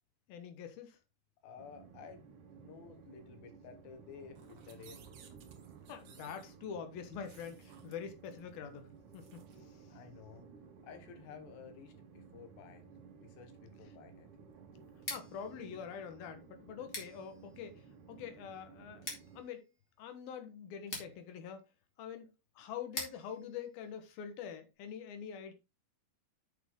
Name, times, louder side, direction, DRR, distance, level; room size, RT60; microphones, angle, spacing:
voice 1, 0.3-1.0 5.9-9.4 15.1-17.7 18.1-19.1 19.3-19.7 20.0-21.6 22.0-22.3 22.6-25.5, left 7 dB, 65° left, 3.0 m, -45 dB
voice 2, 1.4-2.3 2.6-5.1 9.9-10.5 10.8-12.9 13.2-14.3, left 6 dB, 85° left, 3.6 m, -53 dB
Train, 1.6-19.4, right 6 dB, 80° right, 3.7 m, -56 dB
sound 1, 4.4-9.6, right 8 dB, 65° right, 3.1 m, -60 dB
Scissors, 14.9-24.7, left 2 dB, 20° left, 2.9 m, -49 dB
8.6 x 6.8 x 3.8 m
omnidirectional pair, 4.8 m